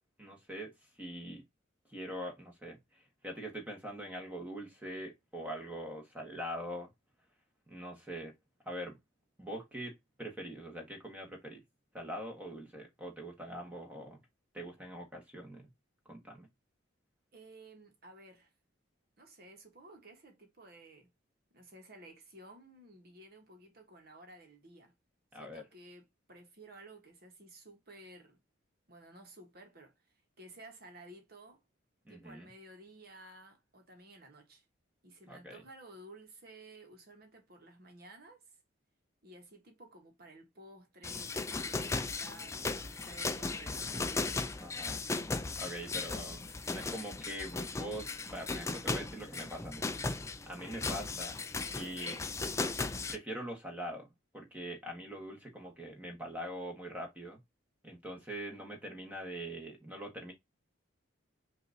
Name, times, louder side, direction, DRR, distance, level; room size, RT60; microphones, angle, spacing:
voice 1, 0.2-1.4 1.9-6.9 7.7-8.3 8.6-9.0 9.4-11.6 11.9-14.2 14.5-15.7 16.0-16.5 25.3-25.6 32.0-32.5 35.3-35.6 44.6-45.0 45.6-46.4 46.7-49.9 50.5-51.4 51.7-52.2 53.1-54.1 54.3-57.4 57.8-60.3, equal, 10° right, 1.4 m, -43 dB
voice 2, 17.3-18.5 19.2-21.1 21.5-24.9 25.3-28.4 28.9-30.0 30.4-31.6 32.1-34.6 35.0-38.4 39.2-44.3 45.7-46.2, right 1 dB, 50° right, 1.3 m, -54 dB
sound 1, 41.0-53.2, left 3 dB, 15° left, 0.3 m, -37 dB
5.7 x 2.7 x 2.7 m
head